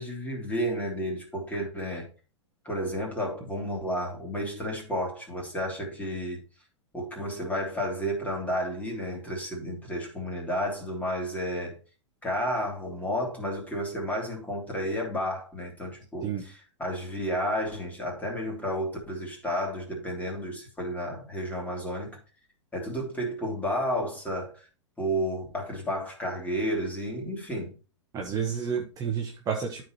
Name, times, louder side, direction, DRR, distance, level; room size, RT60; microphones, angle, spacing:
voice 1, 0.0-2.1 2.6-6.4 6.9-11.8 12.2-22.2 22.7-24.7 25.0-27.8 28.8-28.9, equal, 10° left, 3.1 m, -32 dB
voice 2, 28.1-29.8, right 7 dB, 25° right, 1.2 m, -30 dB
13.0 x 4.4 x 3.1 m
figure-of-eight pair, 100°, 15 cm